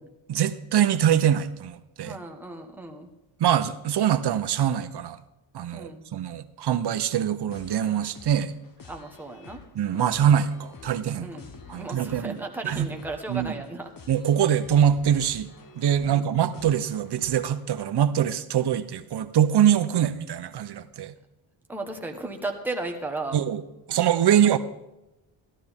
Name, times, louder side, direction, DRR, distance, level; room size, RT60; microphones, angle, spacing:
voice 1, 0.3-2.2 3.4-5.2 5.5-8.5 9.7-11.3 11.7-12.4 12.6-12.9 13.3-13.5 14.1-15.5 15.8-21.1 23.3-23.6 23.9-24.6, right 9 dB, 55° right, 10 dB, 0.8 m, -23 dB
voice 2, 2.0-3.1 5.7-6.0 8.9-9.6 9.9-10.2 11.2-13.9 16.0-16.3 21.7-23.4 24.3-24.6, right 2 dB, 5° right, 2 dB, 1.3 m, -35 dB
sound 1, 7.5-17.8, left 5 dB, 40° left, 1.1 m, -48 dB
13.0 x 12.0 x 3.6 m, 0.96 s
cardioid pair, 115°, 50 cm